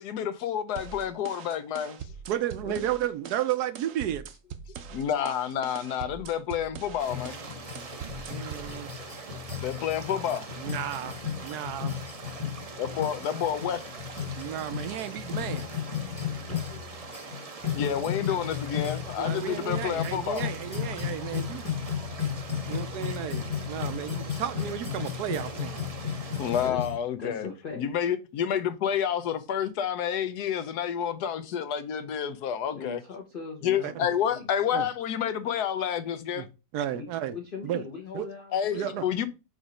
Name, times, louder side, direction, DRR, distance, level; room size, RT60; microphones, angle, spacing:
voice 1, 0.0-2.0 4.9-7.4 9.6-10.5 12.8-13.8 17.7-20.5 26.4-27.5 27.8-33.0 33.6-36.5 38.5-39.3, left 9 dB, 75° left, 1.2 m, -29 dB
sound 1, 0.8-8.7, right 7 dB, 60° right, 0.9 m, -43 dB
voice 2, 2.3-4.2 8.3-8.9 10.6-11.2 11.4-11.9 14.4-15.7 19.2-21.6 22.7-25.9 33.8-33.9 34.7-34.9 36.3-36.5 36.7-37.3 37.6-37.8 38.1-38.3 38.7-39.0, right 11 dB, 80° right, 1.1 m, -33 dB
voice 3, 4.7-5.0 16.4-16.9 24.0-24.1 26.4-26.8 27.2-27.8 31.4-31.5 32.7-34.5 36.9-39.0, left 5 dB, 40° left, 0.9 m, -41 dB
sound 2, 7.0-26.7, right 4 dB, 45° right, 0.5 m, -43 dB
sound 3, 7.1-27.0, left 8 dB, 15° left, 1.1 m, -35 dB
5.0 x 4.1 x 4.9 m
omnidirectional pair, 1.8 m